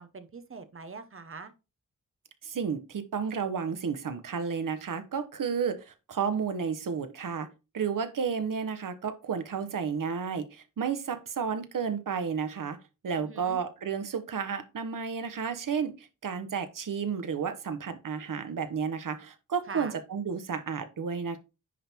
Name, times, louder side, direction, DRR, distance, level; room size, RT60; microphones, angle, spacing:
voice 1, 0.0-1.5 13.2-13.6 19.7-19.9, right 4 dB, 45° right, 1.0 m, -43 dB
voice 2, 2.4-7.5 7.7-12.8 13.0-21.4, right 6 dB, 85° right, 1.2 m, -32 dB
10.0 x 3.6 x 4.4 m
wide cardioid pair, 160°, 31 cm